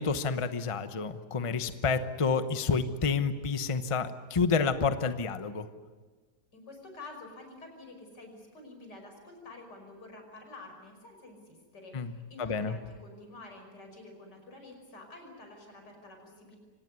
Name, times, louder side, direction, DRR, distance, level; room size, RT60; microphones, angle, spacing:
voice 1, 0.0-5.7 11.9-12.8, left 5 dB, 25° left, 10 dB, 0.8 m, -29 dB
voice 2, 6.5-16.6, left 2 dB, 85° left, 3 dB, 6.1 m, -49 dB
25.0 x 19.0 x 9.6 m, 1.4 s
omnidirectional pair, 1.8 m